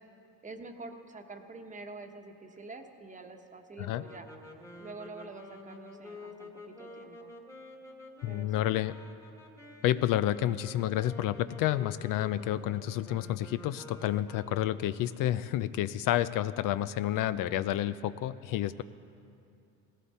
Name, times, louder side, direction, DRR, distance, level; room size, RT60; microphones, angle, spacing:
voice 1, 0.4-4.3 4.8-7.3 8.2-8.7, right 3 dB, 20° right, 5 dB, 1.1 m, -46 dB
sound 1, 3.9-14.9, left 2 dB, 10° left, 1.5 m, -49 dB
voice 2, 8.2-8.9 9.8-18.8, left 13 dB, 65° left, 14 dB, 0.5 m, -30 dB
18.0 x 16.5 x 4.2 m, 2.6 s
cardioid pair, 125°, 35 cm